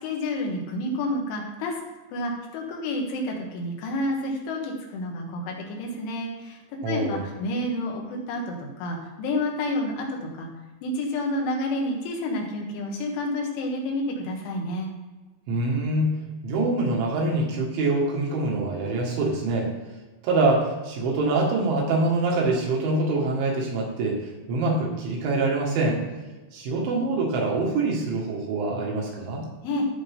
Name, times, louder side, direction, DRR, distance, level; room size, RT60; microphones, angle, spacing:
voice 1, 0.0-1.7 2.1-6.6 6.9-10.5 10.8-14.9 29.6-29.8, left 1 dB, 85° left, 1 dB, 3.9 m, -29 dB
voice 2, 6.8-7.2 15.5-16.1 16.4-19.7 20.2-24.2 24.5-26.0 26.5-29.5, right 2 dB, 80° right, -2 dB, 4.0 m, -25 dB
14.0 x 5.3 x 3.6 m, 1.2 s
omnidirectional pair, 5.3 m